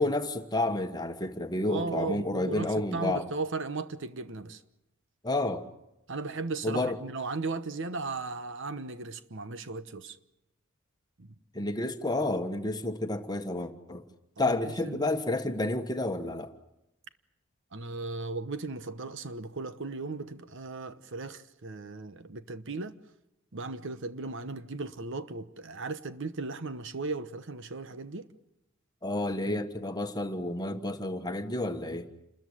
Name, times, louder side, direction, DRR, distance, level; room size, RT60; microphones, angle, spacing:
voice 1, 0.0-3.2 5.2-5.6 6.6-7.0 11.5-14.0 14.4-16.5 29.0-32.1, left 2 dB, 20° left, 1.4 m, -30 dB
voice 2, 1.7-4.6 6.1-10.2 11.2-11.3 14.4-15.1 17.7-23.0 23.5-28.3, right 3 dB, 60° right, 1.1 m, -36 dB
28.5 x 14.0 x 9.9 m
head